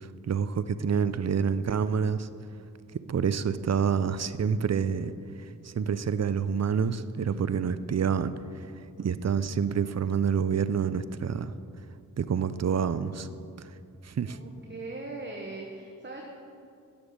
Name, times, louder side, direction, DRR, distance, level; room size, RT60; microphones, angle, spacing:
voice 1, 0.2-2.3 3.1-5.1 5.6-8.3 9.0-11.5 12.2-13.3 14.1-14.4, right 7 dB, 45° right, 14 dB, 0.5 m, -27 dB
voice 2, 14.2-16.2, right 2 dB, 30° right, 0 dB, 1.2 m, -40 dB
10.0 x 7.1 x 6.5 m, 2.5 s
cardioid pair, 50°, 36 cm